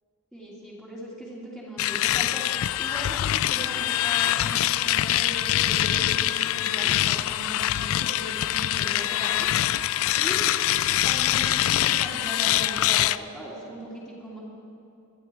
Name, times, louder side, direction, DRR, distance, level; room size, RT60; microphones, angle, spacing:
voice 1, 0.3-9.5 10.2-10.4 11.0-14.4, equal, ahead, -9 dB, 3.2 m, -38 dB
sound 1, 1.8-13.2, left 13 dB, 70° left, 0.3 m, -24 dB
22.0 x 12.0 x 4.7 m, 2.8 s
head